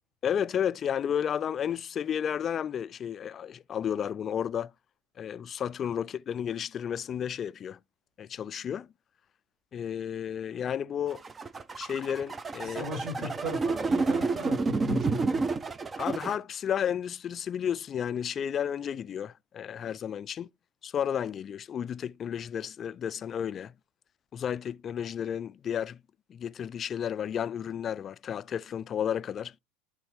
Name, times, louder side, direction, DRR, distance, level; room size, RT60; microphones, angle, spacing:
voice 1, 0.2-4.7 5.2-7.8 8.2-8.9 9.7-11.2 11.8-12.9 13.2-13.3 16.0-20.5 20.8-23.7 24.3-26.0 26.3-29.5, left 8 dB, 35° left, 0.4 m, -32 dB
sound 1, 11.1-16.4, right 3 dB, 20° right, 0.5 m, -29 dB
voice 2, 12.6-15.4, equal, 45° right, 3.4 m, -37 dB
11.5 x 3.9 x 3.2 m
figure-of-eight pair, 75°, 0 cm